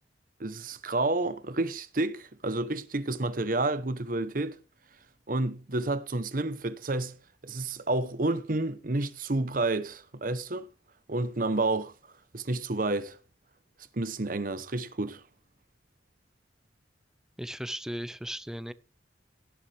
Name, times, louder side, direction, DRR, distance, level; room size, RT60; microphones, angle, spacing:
voice 1, 0.4-4.6 5.3-7.2 7.4-10.7 11.1-11.9 12.3-13.2 13.9-15.2, right 2 dB, 50° right, 0.9 m, -30 dB
voice 2, 17.4-18.7, equal, 5° right, 0.5 m, -36 dB
17.0 x 7.2 x 3.4 m
head